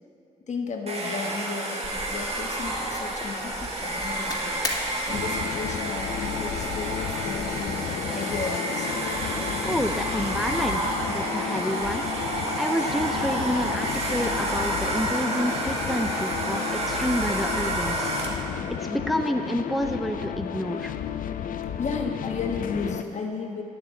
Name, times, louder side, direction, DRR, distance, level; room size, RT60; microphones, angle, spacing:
voice 1, 0.5-4.6 5.1-7.7 8.1-9.2 21.8-23.6, left 4 dB, 55° left, 2 dB, 1.4 m, -34 dB
Domestic sounds home sounds, 0.9-18.5, right 1 dB, 45° right, 1.8 m, -30 dB
sound 1, 1.8-7.8, left 1 dB, 25° left, 2.1 m, -38 dB
sound 2, 5.1-23.0, left 9 dB, 75° left, 0.5 m, -33 dB
voice 2, 9.6-12.1 12.6-20.9, equal, ahead, 5 dB, 0.5 m, -29 dB
9.5 x 7.2 x 8.0 m, 2.6 s
cardioid pair, 80°, 14 cm